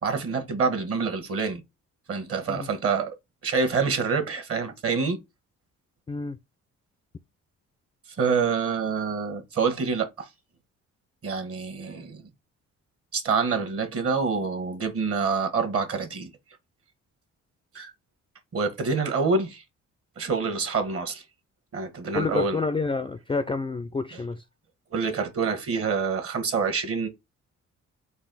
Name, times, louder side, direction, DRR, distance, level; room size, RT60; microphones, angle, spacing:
voice 1, 0.0-1.6 2.1-3.1 3.4-5.2 8.2-10.3 11.2-12.2 13.1-16.3 17.7-17.9 18.5-19.6 20.2-21.2 21.7-22.6 24.1-24.2 24.9-27.1, right 5 dB, 50° right, 1.3 m, -26 dB
voice 2, 22.1-24.4, left 3 dB, 20° left, 0.3 m, -28 dB
4.1 x 2.4 x 3.9 m
cardioid pair, 90°, 30 cm